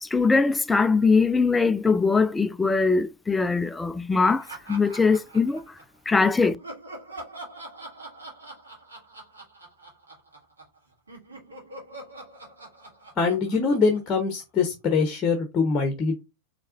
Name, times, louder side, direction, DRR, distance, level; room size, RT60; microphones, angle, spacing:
voice 1, 0.0-5.7 6.1-6.6, left 4 dB, 10° left, 0.3 m, -22 dB
Laughter, 4.2-6.0 6.4-10.8 11.1-14.7, right 2 dB, 75° right, 1.8 m, -44 dB
voice 2, 13.2-16.2, left 4 dB, 25° left, 1.0 m, -23 dB
4.6 x 3.3 x 2.5 m
figure-of-eight pair, 90°, 0 cm